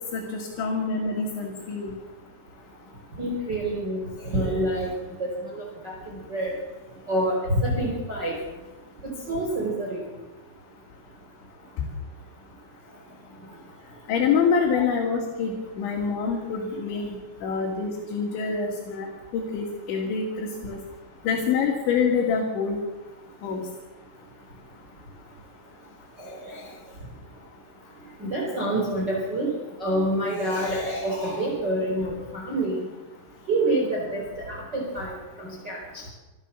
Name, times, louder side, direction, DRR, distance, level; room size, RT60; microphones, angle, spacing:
voice 1, 0.1-1.9 14.1-19.1 19.3-20.8 21.2-22.8 23.4-23.6, left 5 dB, 65° left, 0 dB, 4.9 m, -26 dB
voice 2, 3.2-4.9 5.2-5.9 6.3-6.5 7.1-8.4 9.0-10.0 14.7-14.8 26.2-26.7 28.2-29.5 29.8-32.8 33.5-36.0, right 1 dB, 20° right, -2 dB, 4.8 m, -27 dB
27.0 x 13.5 x 7.2 m, 1.1 s
omnidirectional pair, 5.8 m